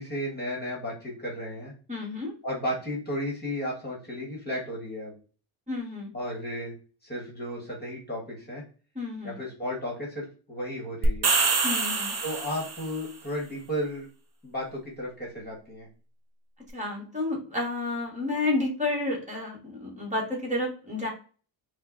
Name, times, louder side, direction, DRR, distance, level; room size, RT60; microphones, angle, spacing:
voice 1, 0.0-1.7 2.4-5.1 6.1-6.7 7.0-8.6 9.2-11.3 12.2-14.1 14.4-15.9, equal, 20° left, -2 dB, 1.4 m, -34 dB
voice 2, 1.9-2.3 5.7-6.1 8.9-9.4 11.6-12.1 16.7-21.1, left 2 dB, 15° right, -2 dB, 1.4 m, -30 dB
sound 1, 11.0-13.0, right 4 dB, 50° right, 1.0 m, -25 dB
5.3 x 2.2 x 2.5 m, 0.38 s
cardioid pair, 135°, 49 cm